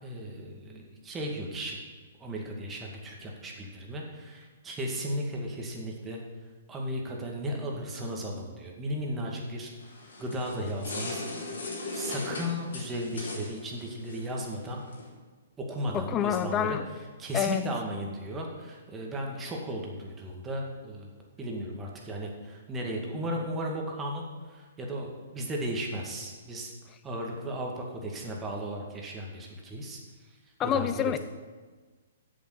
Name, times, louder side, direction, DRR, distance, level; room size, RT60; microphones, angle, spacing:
voice 1, 0.0-1.8 2.2-6.2 6.7-9.7 10.2-11.2 11.5-11.6 11.9-14.8 15.6-16.8 17.2-21.1 21.4-26.7 27.0-31.2, equal, 15° right, -1 dB, 2.2 m, -35 dB
sound 1, 9.8-15.1, left 2 dB, 75° left, 3.7 m, -39 dB
voice 2, 15.9-16.8 17.3-17.6 30.6-31.2, left 10 dB, 25° left, 12 dB, 0.5 m, -27 dB
7.7 x 7.5 x 7.9 m, 1.4 s
hypercardioid pair, 130°, 0 cm